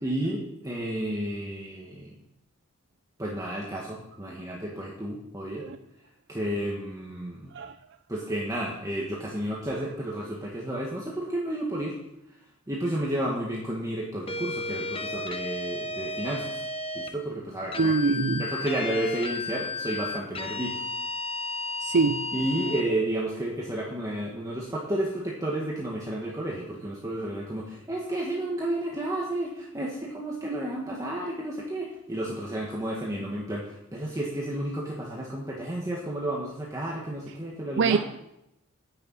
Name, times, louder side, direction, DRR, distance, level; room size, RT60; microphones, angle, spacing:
voice 1, 0.0-2.1 3.2-5.6 6.3-7.5 8.1-11.9 12.7-16.6 16.9-17.9 18.4-20.8 22.3-38.0, right 1 dB, 15° right, -4 dB, 1.8 m, -31 dB
sound 1, 14.3-17.1 17.7-22.9, left 2 dB, 30° left, 0.9 m, -33 dB
voice 2, 17.8-18.5 21.8-22.3 37.8-38.0, right 4 dB, 60° right, 8 dB, 0.5 m, -24 dB
10.0 x 6.8 x 8.3 m, 0.84 s
head